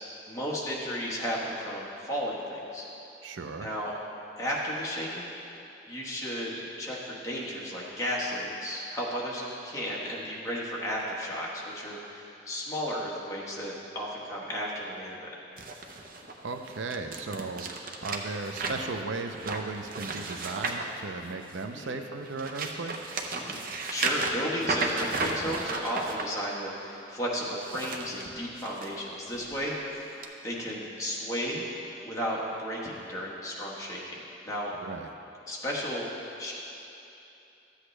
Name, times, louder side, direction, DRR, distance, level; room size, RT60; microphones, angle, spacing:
voice 1, 0.3-2.8 3.6-3.9 4.4-5.3 5.9-15.3 21.7-22.0 23.3-23.6 23.9-30.1 30.4-31.6 32.0-34.2 34.4-34.7 35.5-36.1 36.4-36.5, equal, 15° left, -5 dB, 1.4 m, -34 dB
voice 2, 3.2-3.7 16.4-17.7 18.0-23.2 34.8-35.1, right 3 dB, 85° right, 6 dB, 0.6 m, -36 dB
sound 1, 15.6-21.7 22.2-26.2 27.5-28.9 29.3-29.6 30.2-30.3, right 3 dB, 50° right, 0.7 m, -34 dB
13.0 x 8.1 x 3.3 m, 2.9 s
head